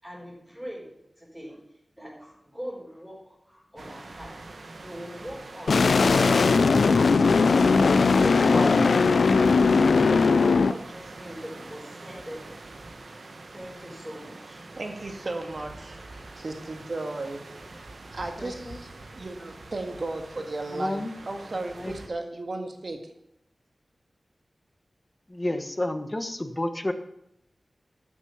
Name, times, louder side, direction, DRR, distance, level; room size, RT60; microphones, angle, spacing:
voice 1, 0.0-1.6 2.0-4.3 4.8-5.8 6.1-6.4 6.8-8.7 9.1-12.6 13.5-14.6 16.1-16.3, equal, 5° right, -8 dB, 5.0 m, -42 dB
sound 1, 3.8-22.1, right 2 dB, 75° right, 1.3 m, -44 dB
sound 2, 5.7-10.7, left 4 dB, 90° left, 0.4 m, -19 dB
sound 3, 8.5-10.9, left 2 dB, 45° left, 1.0 m, -32 dB
voice 2, 14.8-17.4 18.1-23.1, right 2 dB, 55° right, 5 dB, 1.9 m, -35 dB
voice 3, 18.4-18.8 20.7-21.1 21.8-21.9 25.3-26.9, left 1 dB, 25° left, 8 dB, 1.3 m, -30 dB
12.5 x 7.4 x 7.1 m, 0.79 s
wide cardioid pair, 75°, 0 cm